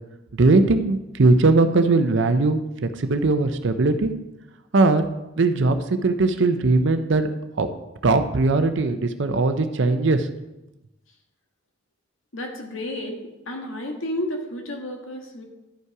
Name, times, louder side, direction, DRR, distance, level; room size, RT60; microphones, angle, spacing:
voice 1, 0.4-2.6 3.0-4.1 4.7-5.0 5.4-5.8 6.0-7.3 7.6-7.7 8.0-10.3, right 3 dB, 60° right, 9 dB, 0.6 m, -19 dB
voice 2, 12.3-13.2 13.5-15.4, left 1 dB, 75° left, 2 dB, 1.6 m, -31 dB
11.5 x 5.4 x 4.7 m, 0.98 s
head